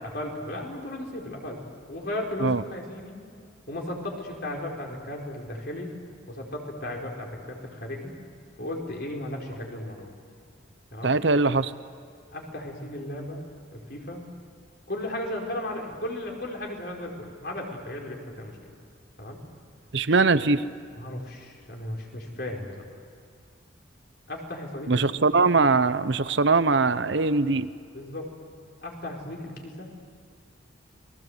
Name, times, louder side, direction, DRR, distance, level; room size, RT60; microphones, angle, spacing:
voice 1, 0.1-1.6 1.9-3.2 3.7-6.0 6.3-8.1 8.6-10.1 10.9-11.2 12.3-13.4 13.7-14.2 14.9-18.6 19.2-19.4 20.9-23.0 24.3-25.0 27.9-28.3 28.8-29.9, left 1 dB, 55° left, 0 dB, 4.7 m, -35 dB
voice 2, 11.0-11.7 19.9-20.6 24.9-27.7, right 3 dB, 65° right, 13 dB, 0.8 m, -21 dB
29.0 x 21.0 x 8.1 m, 2.3 s
head